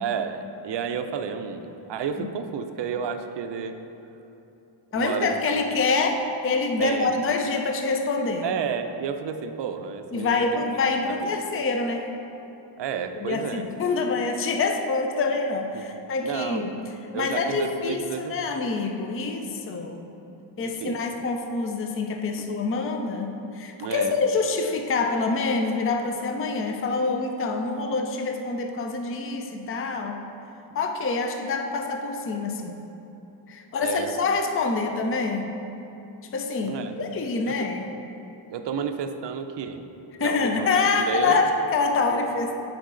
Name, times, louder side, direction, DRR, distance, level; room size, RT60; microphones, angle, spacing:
voice 1, 0.0-3.8 4.9-5.3 6.8-7.2 8.4-10.6 11.1-11.3 12.8-13.7 15.7-15.8 16.2-16.7 17.1-18.4 20.6-21.0 22.4-22.5 23.8-24.2 33.8-34.1 36.6-37.0 37.5-37.6 38.5-39.9 40.2-41.5 42.1-42.3, right 7 dB, 60° right, 7 dB, 0.5 m, -31 dB
voice 2, 4.9-8.5 10.1-12.1 13.2-16.8 17.1-20.1 20.6-30.2 30.7-32.8 33.5-35.5 36.3-37.9 40.2-42.6, left 4 dB, 30° left, 4 dB, 0.4 m, -26 dB
10.0 x 4.6 x 3.8 m, 2.9 s
wide cardioid pair, 160°, 49 cm